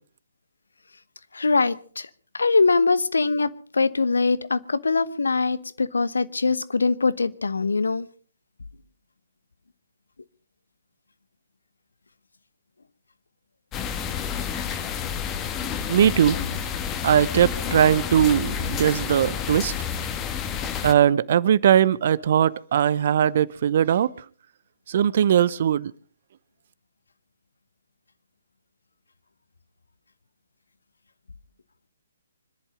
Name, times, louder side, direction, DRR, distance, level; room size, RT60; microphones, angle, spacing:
voice 1, 1.3-2.1 2.4-8.1, left 4 dB, 70° left, 1.1 m, -22 dB
sound 1, 13.7-20.9, left 8 dB, 20° left, 1.5 m, -29 dB
voice 2, 15.9-16.4 17.0-19.7 20.8-24.1 24.9-25.9, right 9 dB, 45° right, 0.7 m, -20 dB
25.5 x 11.0 x 5.0 m
figure-of-eight pair, 130°, 0 cm